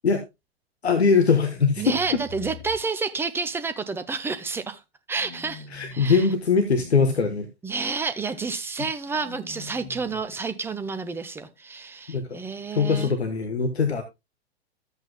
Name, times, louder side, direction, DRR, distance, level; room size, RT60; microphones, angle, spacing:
voice 1, 0.8-2.0 5.7-7.5 12.1-12.4 12.7-14.0, left 5 dB, 75° left, 1.2 m, -21 dB
sound 1, 1.4-2.8 5.1-6.2 6.6-7.3 9.0-10.2, left 2 dB, 15° left, 3.0 m, -43 dB
voice 2, 1.8-4.8 5.1-6.3 7.6-13.1, right 4 dB, 5° right, 0.7 m, -30 dB
13.0 x 8.1 x 2.2 m
figure-of-eight pair, 105°, 32 cm